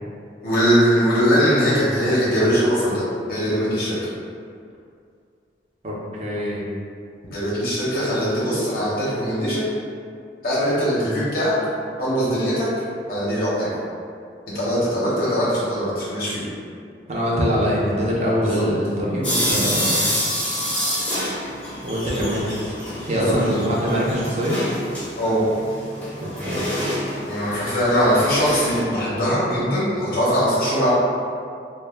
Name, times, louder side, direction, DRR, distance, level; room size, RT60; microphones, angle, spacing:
voice 1, 0.4-3.0 3.3-4.0 7.3-9.7 10.4-11.5 12.0-12.7 13.1-13.7 14.5-16.4 18.4-18.6 22.1-22.3 23.1-23.6 25.2-25.4 27.3-30.9, equal, 55° left, -8 dB, 0.5 m, -21 dB
voice 2, 5.8-6.7 17.1-20.1 21.8-22.7 23.0-24.6 26.2-26.7, equal, 40° right, -5 dB, 0.5 m, -23 dB
sound 1, 19.2-28.8, equal, 10° left, 0.6 m, -27 dB
2.1 x 2.1 x 3.2 m, 2.3 s
head